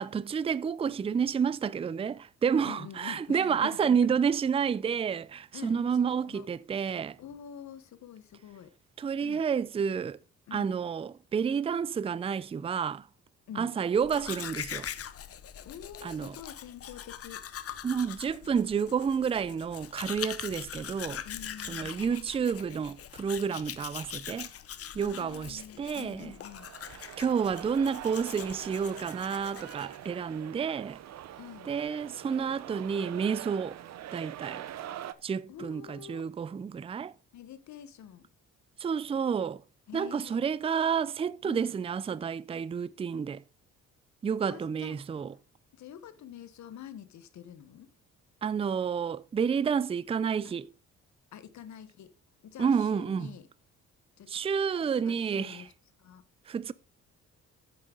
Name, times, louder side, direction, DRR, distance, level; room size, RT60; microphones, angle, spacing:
voice 1, 0.0-7.2 9.0-10.2 10.5-13.1 13.6-14.9 16.0-16.4 17.8-21.2 21.7-24.5 24.9-26.3 27.2-31.0 31.7-33.8 34.1-34.6 35.2-37.1 38.8-39.6 39.9-43.4 44.2-45.3 48.4-50.7 52.6-53.3 54.3-55.6 56.5-56.7, right 6 dB, 20° right, 0.4 m, -30 dB
voice 2, 2.6-4.1 5.5-5.8 6.0-6.5 7.2-8.7 9.2-9.4 10.5-10.7 13.5-13.8 15.6-17.4 21.2-22.1 25.0-26.7 31.4-31.7 35.5-36.2 37.3-38.2 39.9-40.4 41.4-41.7 44.5-45.0 45.8-47.9 50.4-50.5 51.3-52.1 52.4-53.5 54.2-54.3 54.7-55.7 56.0-56.2, left 9 dB, 70° left, 1.1 m, -46 dB
Domestic sounds home sounds, 14.0-30.1, left 9 dB, 50° left, 0.8 m, -42 dB
sound 1, 26.1-35.1, right 11 dB, 60° right, 0.7 m, -44 dB
9.9 x 7.1 x 3.8 m
cardioid pair, 90°, 30 cm